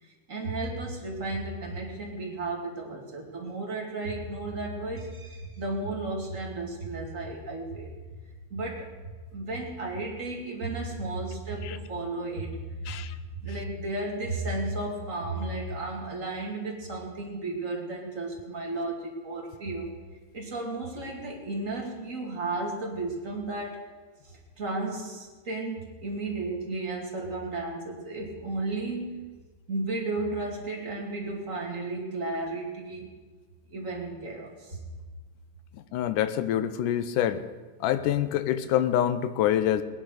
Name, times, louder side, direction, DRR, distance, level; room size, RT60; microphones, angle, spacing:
voice 1, 0.0-7.9 8.5-8.9 9.3-13.1 13.3-20.0 20.3-23.8 24.2-29.3 29.7-33.1 33.7-34.8, right 2 dB, 25° right, 0 dB, 2.5 m, -34 dB
voice 2, 35.9-37.4 37.8-39.8, left 11 dB, 90° left, 12 dB, 2.3 m, -26 dB
19.0 x 10.5 x 6.5 m, 1.3 s
omnidirectional pair, 3.5 m